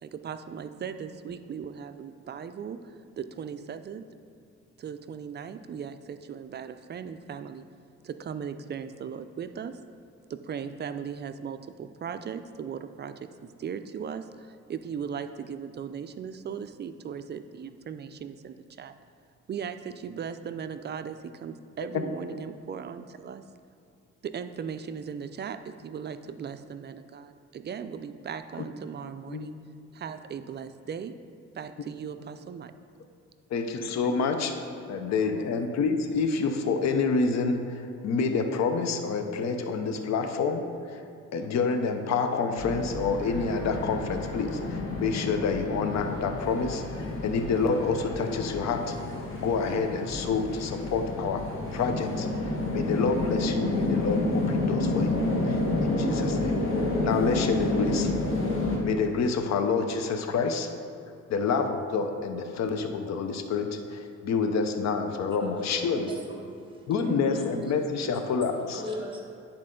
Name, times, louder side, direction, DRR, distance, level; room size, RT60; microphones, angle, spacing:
voice 1, 0.0-4.0 4.8-7.7 8.0-9.8 10.3-19.0 19.5-23.4 24.2-29.5 29.9-31.2 31.5-32.7 35.2-35.5, right 7 dB, 35° right, 10 dB, 0.4 m, -38 dB
voice 2, 33.5-34.5 34.9-41.0 41.3-49.0 49.4-51.4 51.7-52.3 52.7-56.6 57.0-58.1 58.8-60.7 61.3-66.1 66.9-68.8, left 5 dB, 60° left, 6 dB, 0.7 m, -28 dB
sound 1, 42.6-58.8, left 2 dB, 45° left, 1.3 m, -29 dB
voice 3, 65.4-69.4, right 1 dB, 15° right, 0 dB, 1.4 m, -40 dB
9.8 x 4.3 x 3.8 m, 2.6 s
cardioid pair, 90°, 30 cm